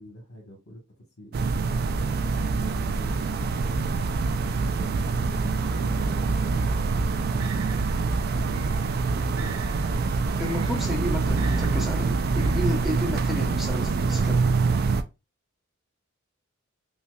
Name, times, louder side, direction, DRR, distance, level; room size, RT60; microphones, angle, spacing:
voice 1, 0.0-1.4 2.5-3.9 4.5-5.0 5.3-6.8, equal, 85° left, 1.3 m, -46 dB
sound 1, 1.3-15.0, right 4 dB, 45° right, 0.3 m, -25 dB
sound 2, 7.4-13.1, right 2 dB, 80° right, 0.7 m, -42 dB
voice 2, 10.4-14.5, equal, ahead, 0.9 m, -32 dB
5.5 x 2.2 x 2.4 m
head